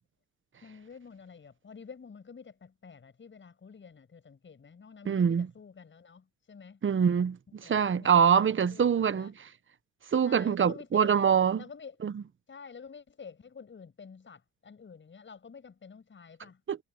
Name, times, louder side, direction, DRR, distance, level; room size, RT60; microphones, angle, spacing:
voice 1, 0.6-6.8 7.6-9.3 10.2-11.1 11.6-11.9 12.5-16.6, left 5 dB, 40° left, 7.6 m, -49 dB
voice 2, 5.0-5.5 6.8-9.5 10.1-11.6 12.0-12.2 16.7-16.8, right 7 dB, 40° right, 1.3 m, -25 dB
cardioid pair, 90°, 30 cm